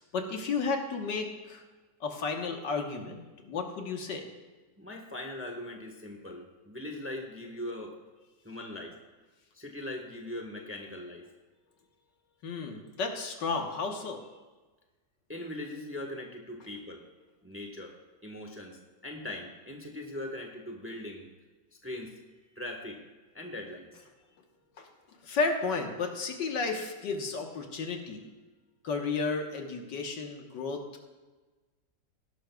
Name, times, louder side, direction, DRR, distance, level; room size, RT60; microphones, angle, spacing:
voice 1, 0.1-1.6 2.0-4.3 12.4-14.2 24.8-24.9 25.2-28.2 28.8-30.8, left 4 dB, 75° left, 3 dB, 1.8 m, -33 dB
voice 2, 4.8-7.9 8.4-8.9 9.5-11.3 15.3-17.0 17.4-17.9 18.2-21.2 21.8-22.1 22.6-23.0 23.3-24.0, left 1 dB, 10° right, 2 dB, 1.1 m, -40 dB
18.0 x 11.5 x 2.3 m, 1.3 s
omnidirectional pair, 2.0 m